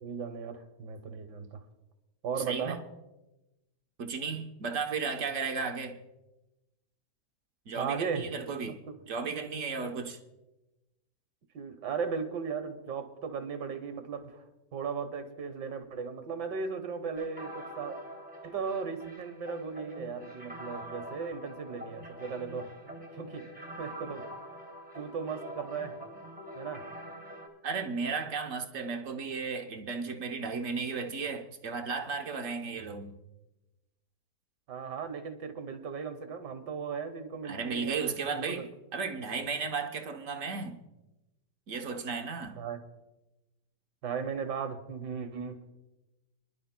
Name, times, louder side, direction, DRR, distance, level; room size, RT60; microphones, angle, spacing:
voice 1, 0.0-1.6 2.2-2.8 7.8-8.3 8.6-8.9 11.5-14.4 14.7-18.0 18.4-23.5 23.8-24.3 24.9-26.0 26.6-26.9 32.7-32.8 34.7-38.7 42.6-42.8 44.0-45.7, right 6 dB, 90° right, 1.8 m, -37 dB
voice 2, 2.5-2.8 4.0-6.0 7.7-8.8 9.1-10.2 27.6-33.1 37.4-40.8 41.7-42.6, right 5 dB, 55° right, 1.2 m, -34 dB
sound 1, 17.2-27.5, equal, 5° right, 2.4 m, -45 dB
27.5 x 11.0 x 2.2 m
omnidirectional pair, 1.8 m